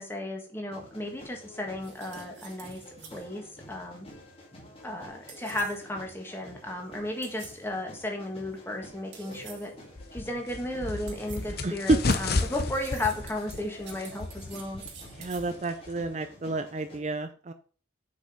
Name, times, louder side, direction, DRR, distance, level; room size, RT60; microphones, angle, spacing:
voice 1, 0.0-2.8 3.1-4.1 4.8-9.7 10.1-14.8, left 1 dB, 10° left, 2 dB, 1.6 m, -34 dB
sound 1, 0.7-17.0, equal, 30° left, 2.1 m, -50 dB
sound 2, 1.8-3.3 5.3-5.9 7.2-7.7 9.1-9.8 11.1-11.6 12.1-15.5, right 7 dB, 65° right, 1.9 m, -49 dB
sound 3, 10.0-16.1, left 3 dB, 50° left, 0.7 m, -33 dB
voice 2, 11.6-12.2 15.2-17.5, right 2 dB, 35° right, 9 dB, 0.5 m, -29 dB
6.7 x 5.4 x 5.3 m, 0.41 s
head